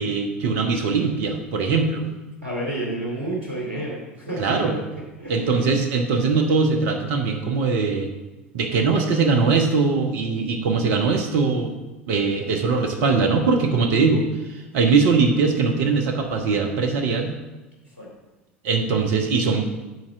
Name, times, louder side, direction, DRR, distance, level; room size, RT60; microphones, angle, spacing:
voice 1, 0.0-2.1 4.4-4.8 5.3-8.1 8.5-11.7 12.1-14.3 14.7-17.3 18.6-19.7, right 4 dB, 60° right, 4 dB, 1.1 m, -21 dB
voice 2, 2.4-4.6 5.2-5.7 17.8-18.1, right 1 dB, 80° right, -5 dB, 2.6 m, -30 dB
9.4 x 4.3 x 6.1 m, 1.1 s
figure-of-eight pair, 75°, 7 cm